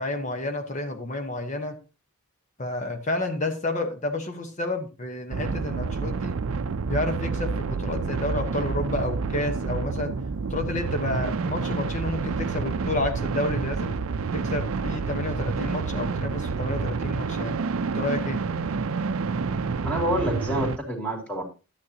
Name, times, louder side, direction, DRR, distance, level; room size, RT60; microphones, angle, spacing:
voice 1, 0.0-1.8 2.6-6.4 6.9-10.1 10.5-13.9 14.3-17.5 17.9-18.4, left 2 dB, 35° left, 6 dB, 1.1 m, -30 dB
sound 1, 5.3-20.8, right 4 dB, 75° right, 0.5 m, -28 dB
voice 2, 19.8-21.4, right 1 dB, 5° left, 1 dB, 2.7 m, -27 dB
11.5 x 9.4 x 2.9 m, 0.31 s
head